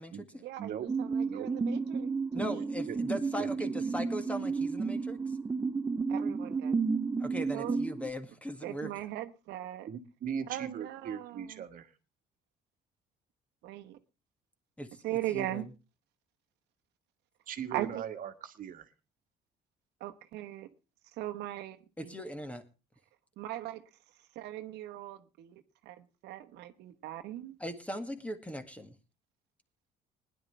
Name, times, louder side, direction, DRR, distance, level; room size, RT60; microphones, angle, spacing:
voice 1, 0.4-1.1 1.3-2.1 2.5-2.6 6.1-6.8 7.5-7.8 8.6-9.9 10.5-11.4 13.6-14.0 15.0-15.6 17.7-17.9 20.0-20.7 21.2-21.8 22.0-22.1 23.4-23.8 24.3-25.6 25.9-26.0 26.2-27.5, right 14 dB, 85° right, 1.2 m, -39 dB
sound 1, 0.9-8.1, right 4 dB, 15° right, 0.6 m, -32 dB
voice 2, 2.3-5.4 7.2-8.9 14.8-15.7 22.0-22.6 27.6-28.9, equal, 10° left, 1.8 m, -39 dB
voice 3, 9.9-11.9 17.5-18.9, right 8 dB, 55° right, 1.5 m, -39 dB
20.0 x 11.0 x 3.3 m
cardioid pair, 110°, 17 cm